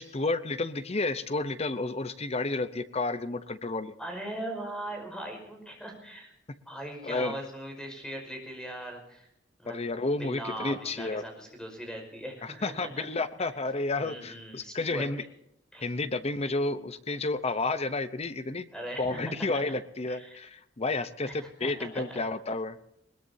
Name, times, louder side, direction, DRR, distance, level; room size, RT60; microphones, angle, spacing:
voice 1, 0.0-3.9 7.0-7.4 9.7-11.2 12.4-15.2 15.8-18.7 19.0-22.8, left 3 dB, 35° left, 12 dB, 0.8 m, -31 dB
voice 2, 4.0-6.3 6.7-9.3 9.6-9.8 10.2-12.9 14.0-15.1 15.7-15.8 18.7-19.6 20.1-20.4 21.3-22.2, right 1 dB, 5° left, 3 dB, 5.4 m, -40 dB
21.5 x 21.0 x 2.8 m, 0.79 s
head